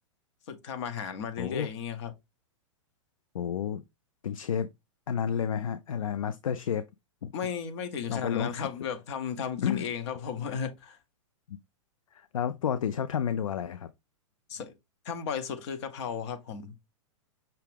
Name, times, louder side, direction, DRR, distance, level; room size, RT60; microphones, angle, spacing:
voice 1, 0.5-2.1 7.3-11.0 14.5-14.7 15.0-16.8, left 7 dB, 55° left, 0.8 m, -35 dB
voice 2, 1.4-1.7 3.3-3.8 4.2-4.7 5.1-6.8 7.2-7.3 8.1-8.7 9.6-9.8 11.5-11.6 12.1-13.9, left 8 dB, 80° left, 0.4 m, -30 dB
5.6 x 2.4 x 3.4 m
hypercardioid pair, 110°, 17 cm